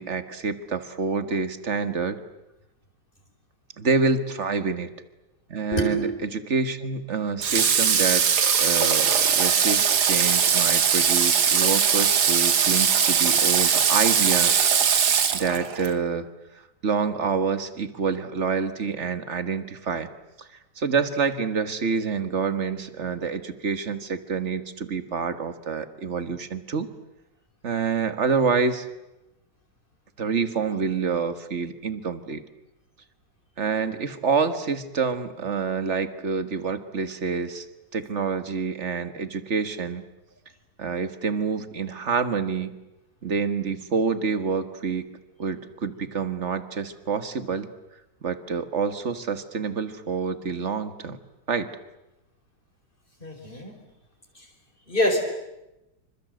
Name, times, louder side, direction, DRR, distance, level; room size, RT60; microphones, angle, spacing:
voice 1, 0.0-2.2 3.8-4.9 5.5-8.2 8.6-14.6 14.8-16.3 16.8-20.1 20.4-20.5 20.8-26.9 27.6-28.8 30.2-32.4 33.6-37.6 37.9-40.0 40.8-42.8 43.2-45.1 45.4-47.7 48.2-51.2 51.5-51.7, right 5 dB, 40° right, 10 dB, 1.8 m, -27 dB
voice 2, 5.7-6.2 53.2-53.7 54.3-54.5 54.9-55.2, equal, 30° left, 4 dB, 4.8 m, -25 dB
Water / Water tap faucet, 7.4-15.9, right 7 dB, 65° right, 2.0 m, -20 dB
27.0 x 25.5 x 7.8 m, 0.96 s
omnidirectional pair, 1.9 m